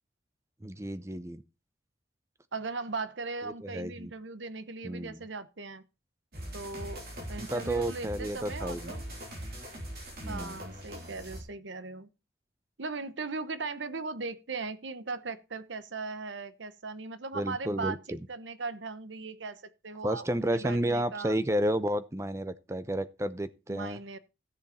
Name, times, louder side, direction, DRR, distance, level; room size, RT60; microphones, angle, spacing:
voice 1, 0.6-1.4 3.4-4.1 4.8-5.2 7.4-8.9 10.2-10.6 17.3-18.2 20.0-24.0, right 1 dB, 15° right, 0.6 m, -31 dB
voice 2, 2.5-5.8 6.5-9.0 10.3-12.1 12.8-21.4 23.7-24.2, right 4 dB, 80° right, 1.0 m, -38 dB
sound 1, 6.3-11.4, equal, 55° right, 3.7 m, -41 dB
14.0 x 7.1 x 4.2 m
head